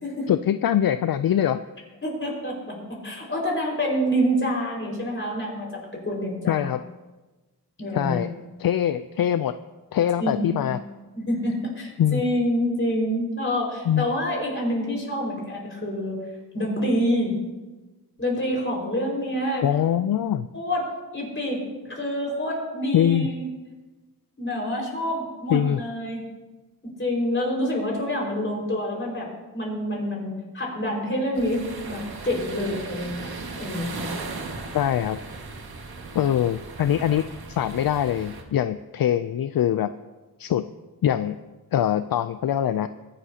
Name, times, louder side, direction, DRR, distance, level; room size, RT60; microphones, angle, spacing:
voice 1, 0.3-1.6 6.5-6.8 7.9-9.5 9.9-10.8 12.0-12.2 13.9-14.1 19.6-20.5 22.9-23.3 25.5-25.8 34.7-35.2 36.1-39.9 40.4-40.7 41.0-41.4 41.7-42.9, left 10 dB, 65° left, 12 dB, 0.5 m, -23 dB
voice 2, 2.0-6.6 7.8-8.2 10.2-10.6 11.1-16.2 16.5-17.4 18.2-19.6 20.5-20.8 21.1-23.5 24.4-26.2 27.0-29.3 29.5-33.3 33.6-34.1, equal, 30° left, -2 dB, 5.1 m, -27 dB
sound 1, 31.3-38.4, right 3 dB, 75° right, 1.8 m, -37 dB
23.0 x 11.0 x 2.9 m, 1.2 s
wide cardioid pair, 95°, 38 cm